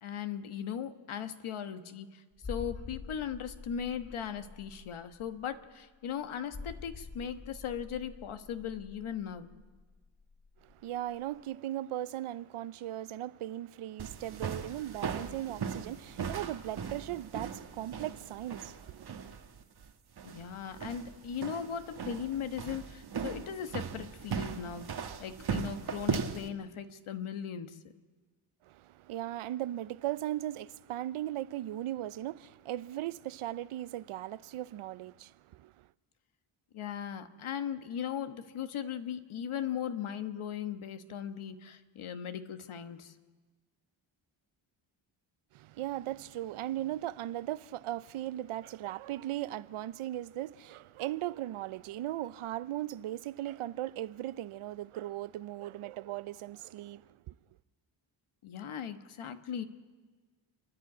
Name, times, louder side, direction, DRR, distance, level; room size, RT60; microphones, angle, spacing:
voice 1, 0.0-9.5 20.2-24.9 25.2-27.8 36.7-43.1 58.4-59.6, left 8 dB, 75° left, 1.3 m, -38 dB
sound 1, 2.4-10.8 11.1-11.2, left 4 dB, 20° left, 0.9 m, -47 dB
voice 2, 10.6-19.3 28.7-35.9 45.5-57.4, right 14 dB, 85° right, 0.6 m, -38 dB
sound 2, 14.0-26.5, right 6 dB, 50° right, 1.3 m, -38 dB
29.5 x 11.0 x 8.4 m
cardioid pair, 90°, 49 cm